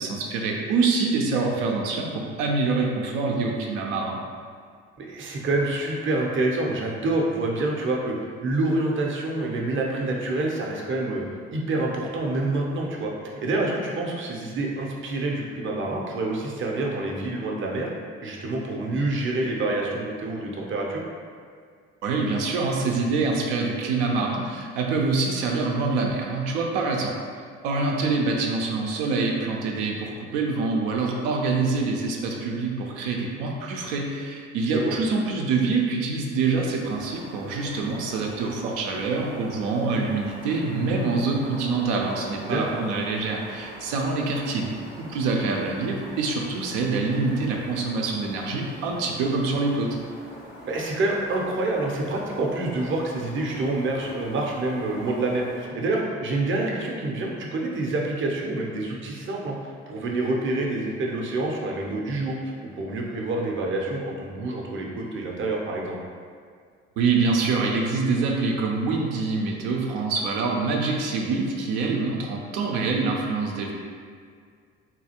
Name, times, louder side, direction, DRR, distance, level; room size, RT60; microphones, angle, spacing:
voice 1, 0.0-4.2 22.0-27.2 27.6-44.7 45.0-49.9 67.0-73.7, right 3 dB, 70° right, 0 dB, 0.6 m, -25 dB
voice 2, 5.0-8.1 8.4-11.2 11.5-13.1 13.4-17.9 18.2-21.0 34.6-34.9 42.4-42.8 50.6-66.0, right 2 dB, 35° right, -1 dB, 0.7 m, -27 dB
sound 1, 36.8-55.7, equal, 85° left, 1.3 m, -43 dB
3.7 x 2.4 x 2.8 m, 2.1 s
hypercardioid pair, 50°, 34 cm